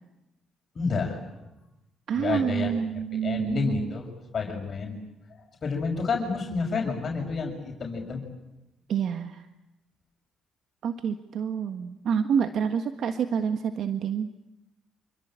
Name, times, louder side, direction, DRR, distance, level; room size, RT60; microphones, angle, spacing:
voice 1, 0.7-1.2 2.2-2.7 3.2-4.1 4.3-5.0 5.6-8.3, left 4 dB, 45° left, 1 dB, 6.4 m, -29 dB
voice 2, 2.1-3.9 8.9-9.4 10.8-14.3, right 7 dB, 65° right, 8 dB, 1.5 m, -28 dB
27.0 x 23.5 x 8.9 m, 0.95 s
cardioid pair, 80°, 0 cm